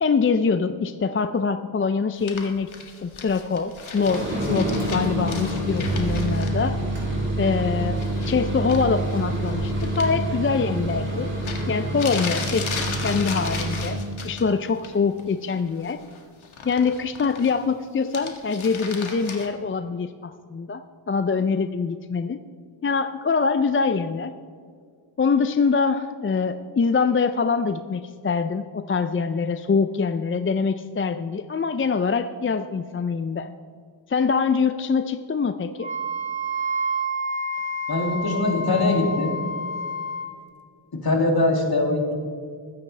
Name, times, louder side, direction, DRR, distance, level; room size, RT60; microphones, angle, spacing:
voice 1, 0.0-2.7 3.0-6.8 7.4-8.0 8.3-11.3 11.7-16.1 16.6-22.4 22.8-24.3 25.2-33.5 34.1-35.9, left 5 dB, 30° left, 10 dB, 0.4 m, -24 dB
sound 1, 2.2-6.5 8.0-8.4 8.7-10.1 11.1-11.2 11.4-14.4 14.8-15.2 15.5-17.7 18.0-19.5, left 5 dB, 85° left, 1.8 m, -35 dB
sound 2, 4.0-14.0, right 1 dB, 25° right, 3.9 m, -27 dB
Wind instrument woodwind instrument, 35.8-40.3, right 1 dB, 75° right, 1.3 m, -29 dB
voice 2, 37.9-39.4 40.9-42.1, left 2 dB, 50° left, 0 dB, 2.5 m, -22 dB
21.0 x 9.6 x 3.3 m, 2.1 s
wide cardioid pair, 80°, 47 cm